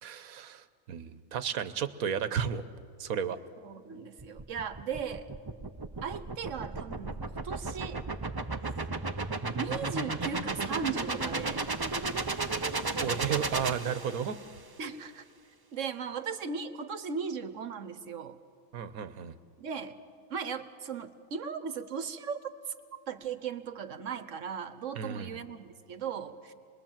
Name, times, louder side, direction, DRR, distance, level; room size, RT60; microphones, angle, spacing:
voice 1, 0.0-2.6 3.0-3.4 13.0-14.4 18.7-19.3 25.0-25.4, right 8 dB, 85° right, 13 dB, 1.4 m, -33 dB
voice 2, 3.6-5.3 6.0-8.0 9.5-11.7 14.8-15.2 15.7-18.4 19.6-20.0 20.3-22.4 23.1-26.5, right 6 dB, 65° right, 11 dB, 1.4 m, -37 dB
sound 1, 4.2-14.5, right 3 dB, 25° right, 0.6 m, -34 dB
26.5 x 21.0 x 7.4 m, 2.4 s
omnidirectional pair, 1.5 m